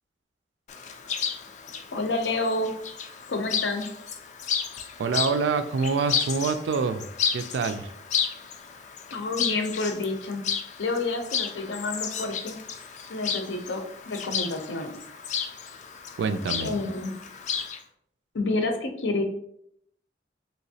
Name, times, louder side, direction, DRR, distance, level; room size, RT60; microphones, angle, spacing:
Chirp tweet, 0.7-17.8, left 7 dB, 40° left, 0.3 m, -33 dB
voice 1, 1.9-2.7 3.3-3.8 9.1-10.4 10.8-12.6 13.1-15.0 16.6-17.1 18.3-19.2, left 2 dB, 85° left, 5 dB, 0.6 m, -29 dB
voice 2, 5.0-7.1 7.3-7.9 16.2-16.8, right 5 dB, 80° right, 10 dB, 0.3 m, -26 dB
3.3 x 2.9 x 2.7 m, 0.72 s
head